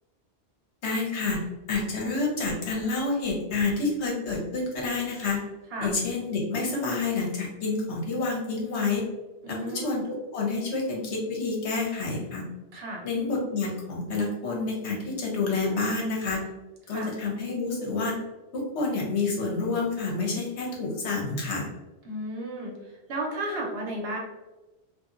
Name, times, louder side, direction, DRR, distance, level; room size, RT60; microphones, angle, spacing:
voice 1, 0.8-1.4 1.7-5.4 5.8-9.1 9.5-12.4 13.0-16.4 16.9-18.1 18.5-21.7, left 3 dB, 75° left, -2 dB, 1.1 m, -28 dB
voice 2, 9.4-10.0 12.7-13.0 16.9-17.1 22.0-22.7 23.1-24.2, right 1 dB, 65° right, -1 dB, 0.9 m, -33 dB
2.7 x 2.5 x 2.4 m, 1.1 s
omnidirectional pair, 1.1 m